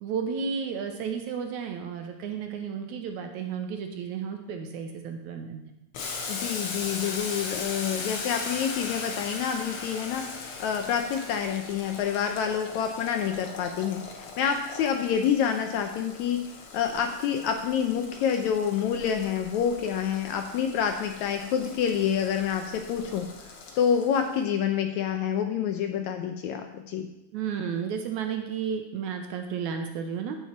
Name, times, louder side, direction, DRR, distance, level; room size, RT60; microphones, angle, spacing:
voice 1, 0.0-5.6 27.3-30.4, right 6 dB, 75° right, 5 dB, 2.0 m, -32 dB
Boiling, 5.9-24.4, left 4 dB, 60° left, 1.6 m, -39 dB
voice 2, 6.3-10.2 10.6-27.1, left 8 dB, 75° left, 5 dB, 1.8 m, -28 dB
14.5 x 5.7 x 4.5 m, 0.90 s
omnidirectional pair, 3.8 m